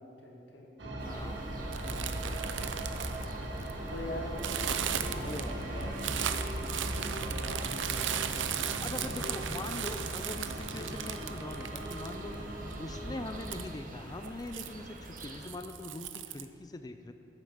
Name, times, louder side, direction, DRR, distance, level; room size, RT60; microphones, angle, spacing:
voice 1, 0.0-3.0 3.9-9.5, left 1 dB, 70° left, -1 dB, 2.2 m, -46 dB
sound 1, 0.8-13.6, right 1 dB, 70° right, 1.7 m, -39 dB
voice 2, 1.0-1.4 5.1-5.9 8.8-12.3 12.8-17.1, left 2 dB, 20° left, 8 dB, 0.4 m, -42 dB
sound 2, 1.0-15.5, right 1 dB, 45° right, 1.2 m, -44 dB
sound 3, 1.7-3.9 4.4-12.4 12.7-12.8 13.4-13.7 14.2-14.7 15.2-16.5, right 9 dB, 85° right, 0.6 m, -37 dB
14.0 x 8.1 x 5.8 m, 2.9 s
head